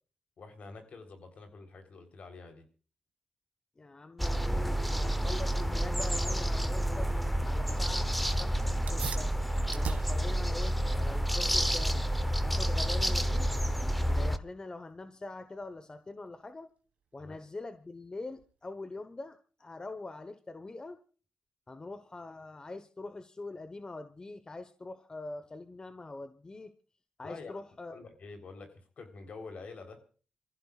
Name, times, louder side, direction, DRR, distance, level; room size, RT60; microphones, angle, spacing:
voice 1, 0.4-2.7 4.6-4.7 17.2-17.4 27.2-27.6 27.9-28.7 29.0-30.0, left 4 dB, 65° left, 5 dB, 3.7 m, -47 dB
voice 2, 3.8-7.1 7.4-9.3 9.7-12.0 12.4-13.6 14.0-16.7 17.1-21.0 21.7-26.7 27.2-27.9, left 2 dB, 30° left, 10 dB, 1.2 m, -44 dB
sound 1, 4.2-14.4, equal, ahead, 0.9 m, -29 dB
sound 2, 8.9-18.8, right 6 dB, 75° right, 1.8 m, -46 dB
27.0 x 15.0 x 2.4 m, 0.38 s
cardioid pair, 70°, 3 cm